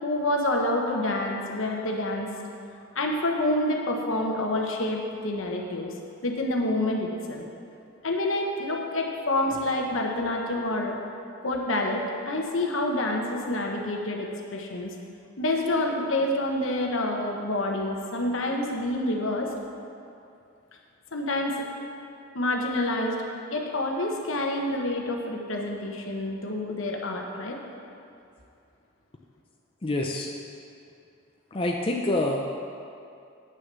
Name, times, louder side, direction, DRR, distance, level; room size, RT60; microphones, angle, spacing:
voice 1, 0.0-2.3 2.9-5.9 6.2-7.4 8.0-11.0 11.4-14.9 15.4-19.5 21.1-21.6 22.3-23.2 23.5-27.6, left 1 dB, 70° left, 1 dB, 1.2 m, -27 dB
voice 2, 29.8-30.3 31.5-32.4, left 1 dB, 25° left, 0 dB, 0.5 m, -26 dB
9.3 x 6.5 x 6.7 m, 2.5 s
head